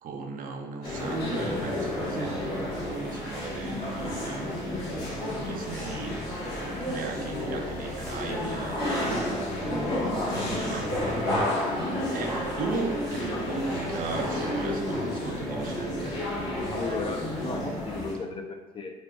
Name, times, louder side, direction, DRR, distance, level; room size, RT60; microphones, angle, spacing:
voice 1, 0.0-4.5 5.1-6.1 6.5-9.2 10.3-11.0 12.1-16.2, right 4 dB, 55° right, 4 dB, 0.4 m, -37 dB
sound 1, 0.8-18.1, left 1 dB, 75° left, 1.0 m, -31 dB
voice 2, 9.9-10.8 13.3-13.5 16.7-19.0, left 3 dB, 30° left, 4 dB, 0.4 m, -36 dB
3.4 x 2.5 x 2.2 m, 1.1 s
cardioid pair, 110°, 17 cm